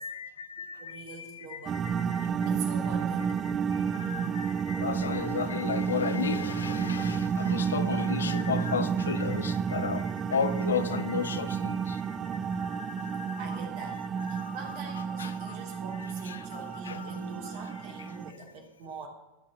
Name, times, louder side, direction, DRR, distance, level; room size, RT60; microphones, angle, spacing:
voice 1, 0.0-2.3 3.7-12.2 12.6-12.8 13.0-13.4 14.3-14.5 15.2-15.6 16.3-16.6 16.9-17.2, left 6 dB, 70° left, 0.7 m, -34 dB
voice 2, 0.8-1.9 2.4-3.3 13.4-19.1, right 4 dB, 45° right, 2.8 m, -44 dB
sound 1, 1.7-18.3, right 6 dB, 25° right, 0.4 m, -31 dB
13.5 x 5.7 x 7.7 m
figure-of-eight pair, 90°, 0 cm